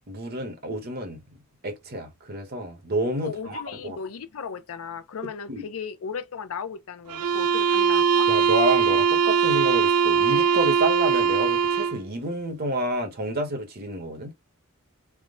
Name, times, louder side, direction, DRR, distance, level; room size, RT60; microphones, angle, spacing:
voice 1, 0.1-1.2 1.6-4.0 5.5-5.7 8.3-14.3, right 1 dB, 45° right, 1.0 m, -29 dB
voice 2, 3.2-8.3, left 6 dB, 65° left, 0.5 m, -36 dB
sound 1, 7.1-12.1, right 6 dB, 90° right, 0.4 m, -21 dB
3.6 x 2.1 x 3.7 m
head